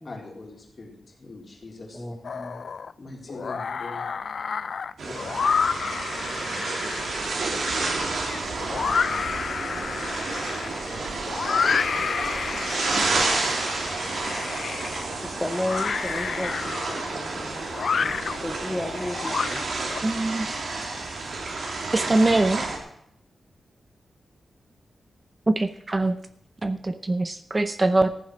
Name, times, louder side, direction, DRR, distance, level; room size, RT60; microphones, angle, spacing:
voice 1, 0.0-2.3 3.0-4.1, left 2 dB, 40° left, -1 dB, 4.0 m, -42 dB
voice 2, 1.9-2.6 3.4-3.8 5.0-5.4 15.2-16.8 17.1-19.7, left 1 dB, 10° left, 4 dB, 0.8 m, -34 dB
sound 1, 2.2-2.9 3.3-20.0, left 5 dB, 60° left, 0.5 m, -30 dB
sound 2, 5.0-22.8, right 3 dB, 75° right, 2.9 m, -30 dB
voice 3, 20.0-20.6 21.9-22.7 25.5-26.2 26.6-28.1, right 2 dB, 25° right, 10 dB, 0.6 m, -23 dB
14.5 x 7.5 x 6.2 m, 0.71 s
wide cardioid pair, 140°, 0 cm